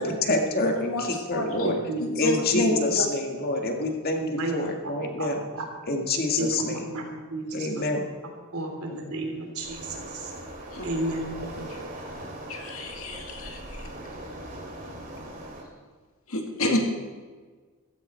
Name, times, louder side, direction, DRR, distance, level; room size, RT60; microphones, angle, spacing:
voice 1, 0.0-1.8 2.2-5.4 5.9-6.9 7.5-8.1, left 2 dB, 45° left, 3 dB, 1.9 m, -27 dB
voice 2, 0.6-1.7 2.0-3.1 10.7-10.9 12.5-13.8 16.3-16.8, left 1 dB, 70° left, 2 dB, 2.3 m, -29 dB
voice 3, 1.6-2.9 4.2-5.7 6.4-7.0 7.3-7.7 8.5-10.3 10.8-11.5, right 1 dB, 85° right, 2 dB, 3.3 m, -32 dB
Waves surf, 9.6-15.6, right 1 dB, 40° right, 2.7 m, -40 dB
15.5 x 14.5 x 4.4 m, 1.5 s
head